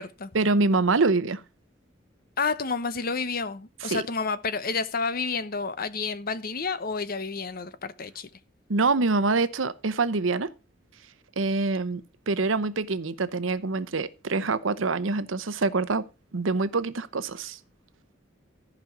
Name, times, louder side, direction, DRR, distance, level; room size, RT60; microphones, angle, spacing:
voice 1, 0.3-1.4 3.8-4.0 8.7-10.5 11.4-12.0 12.3-16.0 16.3-17.6, right 3 dB, 85° right, 0.8 m, -25 dB
voice 2, 2.4-8.3, left 4 dB, 50° left, 0.9 m, -30 dB
14.0 x 5.3 x 5.9 m
head